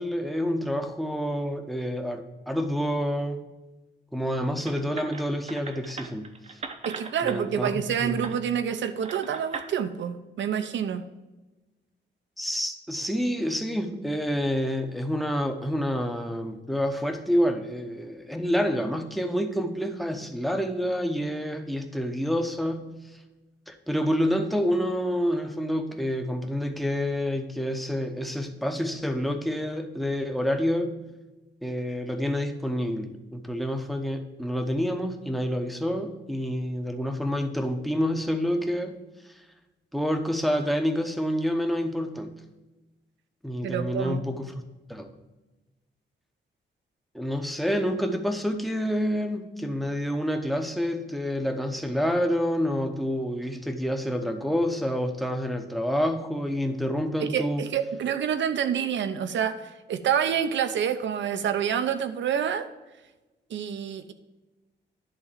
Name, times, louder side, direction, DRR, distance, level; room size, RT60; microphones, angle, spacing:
voice 1, 0.0-3.4 4.1-6.6 7.2-8.3 12.4-22.9 23.7-31.0 31.6-38.9 39.3-39.4 39.9-42.3 43.4-44.5 44.9-45.1 47.1-57.6, equal, ahead, 5 dB, 0.8 m, -28 dB
sound 1, 4.6-7.4 8.2-8.4 9.0-9.7, right 4 dB, 35° right, 0.7 m, -39 dB
voice 2, 6.8-11.1 43.6-44.2 57.2-62.7 63.5-64.1, right 8 dB, 80° right, 10 dB, 0.8 m, -28 dB
11.0 x 3.9 x 7.3 m, 1.1 s
wide cardioid pair, 165°, 19 cm